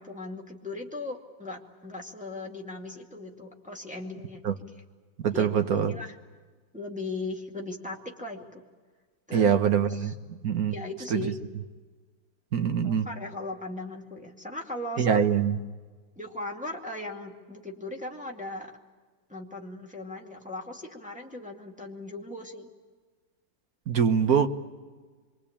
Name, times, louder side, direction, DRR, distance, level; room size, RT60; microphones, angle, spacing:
voice 1, 0.0-4.4 5.3-6.2 6.7-8.6 9.3-9.5 9.9-10.1 10.7-11.4 12.8-15.2 16.2-18.7 19.3-22.7, left 2 dB, 5° right, 2.1 m, -38 dB
voice 2, 5.2-5.9 9.3-10.7 11.1-11.3 12.5-13.1 15.0-15.6 23.9-24.5, right 7 dB, 55° right, 1.5 m, -24 dB
27.0 x 23.5 x 8.6 m
omnidirectional pair, 2.0 m